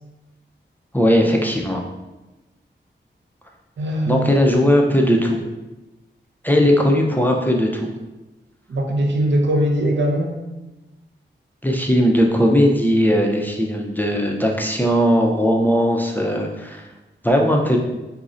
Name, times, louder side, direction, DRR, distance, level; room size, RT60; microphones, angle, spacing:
voice 1, 0.9-1.8 4.1-5.4 6.4-7.9 11.6-16.8 17.2-17.8, equal, 10° left, 0 dB, 0.4 m, -18 dB
voice 2, 3.8-4.4 8.7-10.3, right 1 dB, 70° right, 1 dB, 0.5 m, -20 dB
3.7 x 2.0 x 2.4 m, 1.0 s
cardioid pair, 60°, 19 cm